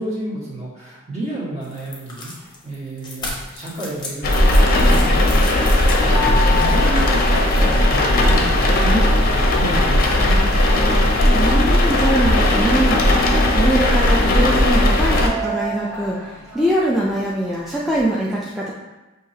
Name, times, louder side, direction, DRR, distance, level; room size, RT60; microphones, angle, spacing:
voice 1, 0.0-10.5, right 1 dB, 35° right, -7 dB, 1.5 m, -30 dB
sound 1, 1.6-7.7, left 2 dB, 20° left, 0.9 m, -35 dB
sound 2, 4.2-15.3, left 1 dB, 45° left, 0.6 m, -16 dB
sound 3, 6.1-18.0, left 2 dB, 80° right, 1.0 m, -33 dB
voice 2, 11.3-13.0 13.5-18.7, right 1 dB, ahead, -6 dB, 0.4 m, -22 dB
6.2 x 2.8 x 2.8 m, 1.1 s
head